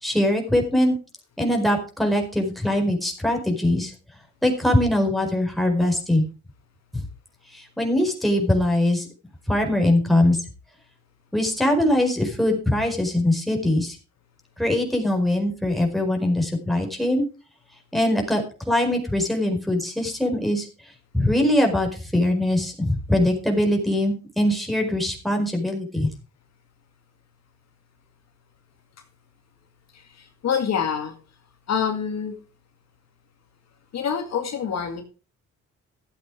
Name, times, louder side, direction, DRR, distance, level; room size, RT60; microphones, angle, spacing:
voice 1, 0.0-0.9 1.4-3.9 4.4-6.2 7.5-9.1 9.5-10.4 11.3-14.0 14.6-17.2 17.9-18.4 18.7-20.7 21.1-26.1, left 1 dB, ahead, 3 dB, 4.6 m, -22 dB
voice 2, 29.9-31.1 31.7-32.3 33.9-35.0, left 7 dB, 60° left, 5 dB, 2.1 m, -26 dB
13.5 x 8.0 x 5.0 m, 0.35 s
cardioid pair, 90°, 30 cm